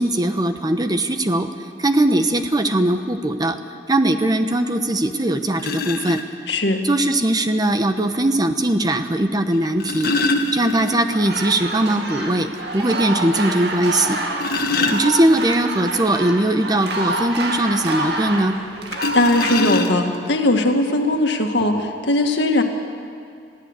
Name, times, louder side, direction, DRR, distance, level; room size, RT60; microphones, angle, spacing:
voice 1, 0.0-1.5 1.8-3.6 3.9-6.2 6.8-10.1 10.5-12.5 12.7-14.2 14.9-18.6, right 1 dB, 25° right, 8 dB, 1.0 m, -20 dB
sound 1, 4.9-5.0 5.6-6.2 7.6-7.7 9.5-11.3 11.6-11.7 12.1-12.2 12.7-12.8 14.0-15.6 18.9-20.3 21.1-21.2 21.6-21.8, left 3 dB, 60° left, 1.5 m, -24 dB
voice 2, 6.5-6.8 18.9-22.6, left 1 dB, 75° left, 4 dB, 2.0 m, -19 dB
sound 2, 11.1-19.6, right 2 dB, 70° right, 2.1 m, -27 dB
22.0 x 15.5 x 8.2 m, 2.3 s
head